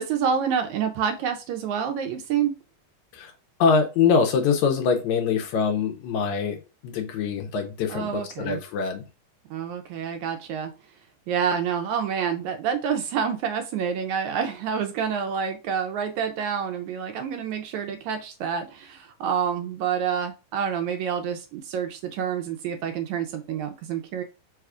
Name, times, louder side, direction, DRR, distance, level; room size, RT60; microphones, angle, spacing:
voice 1, 0.0-2.5 7.9-8.6 9.5-10.7 11.3-24.2, right 7 dB, 80° right, 5 dB, 1.8 m, -28 dB
voice 2, 3.6-9.0, left 5 dB, 75° left, 3 dB, 1.9 m, -24 dB
4.9 x 2.3 x 4.7 m, 0.30 s
omnidirectional pair, 3.7 m